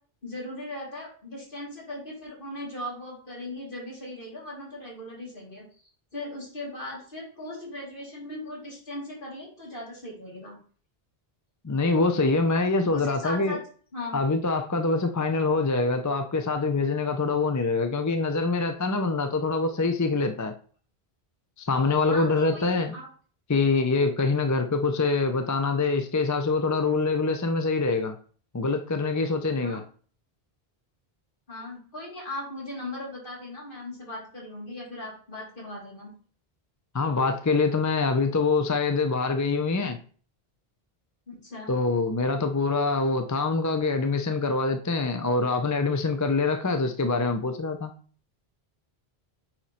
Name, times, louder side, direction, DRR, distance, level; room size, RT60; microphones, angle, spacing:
voice 1, 0.2-10.6 12.9-13.6 13.9-14.2 22.1-23.1 29.6-29.8 31.5-36.1 41.3-41.7, left 1 dB, 55° left, -4 dB, 3.0 m, -38 dB
voice 2, 11.6-13.6 14.1-20.5 21.6-22.9 23.5-28.1 28.5-29.8 36.9-40.0 41.7-47.9, left 3 dB, 25° left, 6 dB, 0.5 m, -25 dB
9.0 x 3.1 x 4.2 m, 0.43 s
omnidirectional pair, 1.1 m